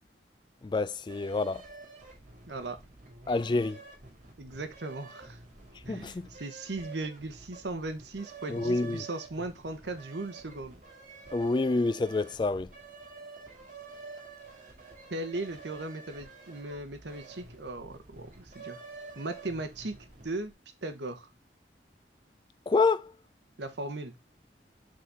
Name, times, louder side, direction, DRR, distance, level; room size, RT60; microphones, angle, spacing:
voice 1, 0.6-1.6 3.3-3.8 5.9-6.3 8.5-9.0 11.3-12.7 22.7-23.1, left 3 dB, 25° left, 0.3 m, -27 dB
sound 1, 1.1-20.5, right 4 dB, 50° right, 2.2 m, -49 dB
voice 2, 2.5-2.8 4.4-5.4 5.9-10.8 15.1-18.8 19.1-20.0 20.2-20.5 20.8-21.3 23.6-24.2, right 2 dB, 80° right, 1.1 m, -37 dB
6.7 x 4.1 x 3.5 m
head